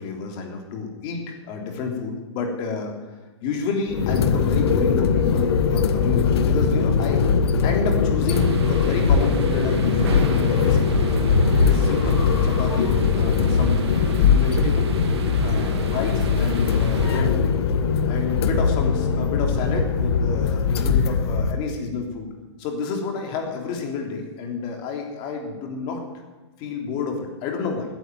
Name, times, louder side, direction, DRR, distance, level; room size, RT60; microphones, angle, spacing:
voice 1, 0.0-2.9 3.4-7.2 7.6-11.1 11.6-14.9 15.4-17.5 18.1-22.3 22.6-26.0 26.6-27.9, left 4 dB, 30° left, 3 dB, 3.3 m, -30 dB
sound 1, 3.9-21.5, left 5 dB, 60° left, 1.4 m, -20 dB
sound 2, 8.3-17.2, right 5 dB, 65° right, 2.5 m, -32 dB
15.0 x 10.0 x 9.1 m, 1.3 s
hypercardioid pair, 155°, 15 cm